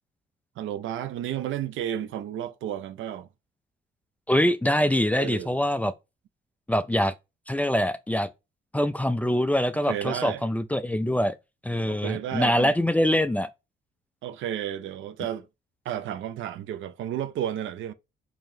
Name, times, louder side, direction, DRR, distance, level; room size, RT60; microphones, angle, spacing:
voice 1, 0.6-3.3 5.1-5.5 9.9-10.4 11.9-12.7 14.2-15.5 15.8-17.9, right 10 dB, 80° right, 0.5 m, -32 dB
voice 2, 4.3-5.9 6.7-7.1 7.5-8.3 8.7-11.4 11.6-13.5, left 1 dB, 5° left, 0.4 m, -24 dB
4.8 x 2.9 x 2.7 m
cardioid pair, 90°, 20 cm